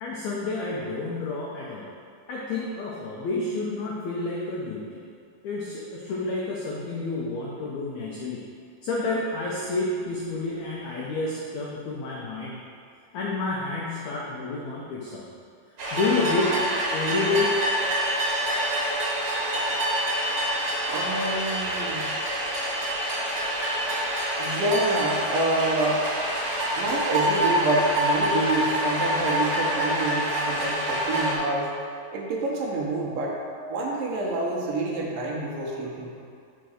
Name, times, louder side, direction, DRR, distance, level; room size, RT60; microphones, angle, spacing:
voice 1, 0.0-1.9 2.3-5.0 5.4-8.4 8.8-12.6 13.1-15.3 15.9-17.6, left 3 dB, 80° left, -4 dB, 1.6 m, -29 dB
sound 1, 15.8-31.4, right 1 dB, 55° right, 2.4 m, -26 dB
voice 2, 20.9-22.1 24.4-26.1 26.8-31.7 32.1-33.4 33.7-36.1, right 2 dB, 75° right, -2 dB, 2.3 m, -27 dB
5.1 x 4.6 x 6.2 m, 2.3 s
omnidirectional pair, 4.2 m